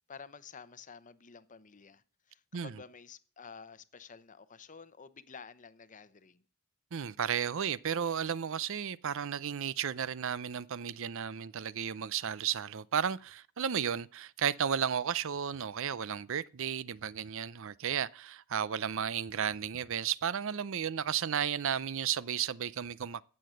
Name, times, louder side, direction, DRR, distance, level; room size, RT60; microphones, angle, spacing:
voice 1, 0.1-6.4, left 5 dB, 35° left, 0.8 m, -51 dB
voice 2, 6.9-23.2, right 8 dB, 65° right, 0.5 m, -33 dB
16.0 x 7.8 x 6.4 m
head